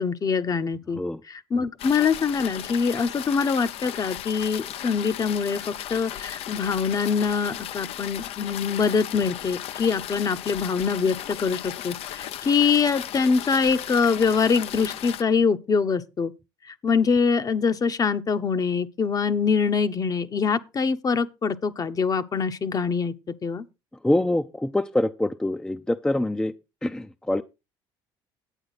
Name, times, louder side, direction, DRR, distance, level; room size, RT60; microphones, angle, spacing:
voice 1, 0.0-1.0 1.3-16.3 16.7-23.1 23.4-23.6, left 5 dB, 35° left, 0.9 m, -24 dB
sound 1, 1.8-15.2, left 12 dB, 65° left, 0.6 m, -36 dB
voice 2, 24.0-26.5 26.8-27.4, left 1 dB, 5° left, 0.5 m, -25 dB
10.0 x 8.6 x 4.1 m
supercardioid pair, 85°, 11 cm